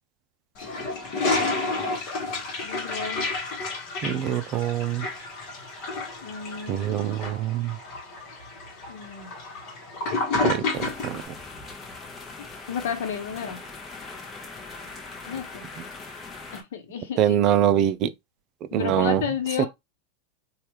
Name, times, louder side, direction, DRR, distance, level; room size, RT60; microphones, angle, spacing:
Toilet flush, 0.6-11.2, left 3 dB, 50° left, 1.1 m, -30 dB
voice 1, 2.6-3.3 6.2-6.9 8.9-9.3 12.4-13.6 15.3-15.7 16.5-17.4 18.7-19.7, left 7 dB, 70° left, 0.9 m, -32 dB
voice 2, 4.0-5.1 6.7-7.8 10.4-11.2 17.2-18.1 18.7-19.2 19.6-19.7, right 10 dB, 45° right, 0.4 m, -24 dB
sound 1, 10.7-16.6, left 3 dB, 25° left, 0.8 m, -41 dB
3.3 x 2.4 x 2.9 m
hypercardioid pair, 100°, 0 cm